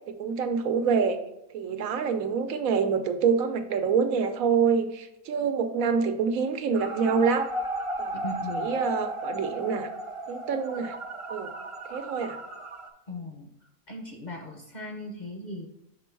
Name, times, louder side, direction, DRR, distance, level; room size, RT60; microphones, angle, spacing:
voice 1, 0.1-1.2 1.5-7.5 8.0-8.2 8.5-9.9 10.3-10.9 11.3-11.5 11.9-12.4, right 6 dB, 80° right, 7 dB, 1.1 m, -26 dB
sound 1, 6.8-12.9, right 1 dB, 60° right, 0.3 m, -35 dB
voice 2, 8.1-8.8 13.1-13.5 13.9-15.7, left 1 dB, 45° left, 2 dB, 0.6 m, -38 dB
6.1 x 4.4 x 4.5 m, 0.85 s
omnidirectional pair, 1.4 m